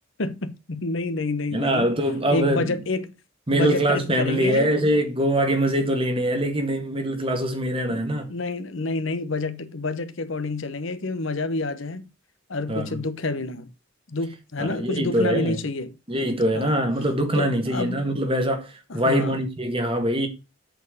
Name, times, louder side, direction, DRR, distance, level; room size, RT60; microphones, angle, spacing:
voice 1, 0.2-1.9 2.3-3.1 3.5-4.7 7.9-12.1 12.5-13.7 14.1-15.9 16.5-16.7 17.3-18.1 18.9-19.4, left 2 dB, 65° left, 0.9 m, -28 dB
voice 2, 1.5-2.8 3.5-8.3 12.7-13.0 14.6-15.6 16.1-20.3, right 1 dB, 25° right, 1.7 m, -23 dB
8.1 x 4.4 x 6.6 m
head